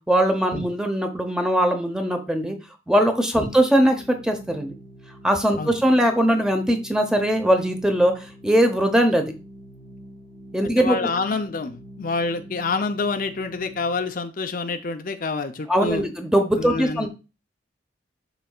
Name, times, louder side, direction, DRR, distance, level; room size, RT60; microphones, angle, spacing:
voice 1, 0.1-2.6 2.9-4.7 5.2-9.3 10.5-11.0 15.7-17.1, equal, 5° right, 5 dB, 0.9 m, -20 dB
Organ, 3.5-14.2, right 1 dB, 65° right, 4.3 m, -45 dB
voice 2, 10.8-16.0 16.6-17.1, left 4 dB, 50° left, 7 dB, 0.6 m, -27 dB
12.0 x 4.1 x 2.4 m, 0.30 s
head